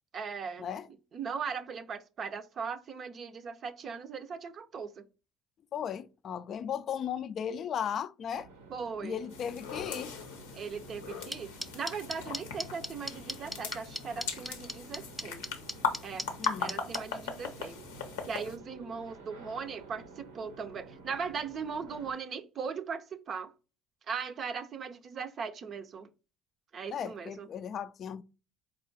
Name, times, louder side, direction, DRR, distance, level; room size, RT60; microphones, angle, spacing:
voice 1, 0.1-0.7 1.1-5.0 8.7-9.2 10.5-15.4 16.0-16.2 16.6-17.8 18.2-23.5 24.1-26.1 26.7-27.5, right 6 dB, 50° right, 0.5 m, -39 dB
voice 2, 5.7-8.5 9.0-10.1 16.4-16.8 26.9-28.2, left 8 dB, 50° left, 0.3 m, -36 dB
sound 1, 8.3-22.1, right 4 dB, 90° right, 0.7 m, -52 dB
sound 2, 9.3-18.6, left 5 dB, 85° left, 0.7 m, -39 dB
sound 3, 11.3-17.0, equal, 5° right, 0.6 m, -35 dB
4.2 x 2.3 x 3.8 m
hypercardioid pair, 65°, 0 cm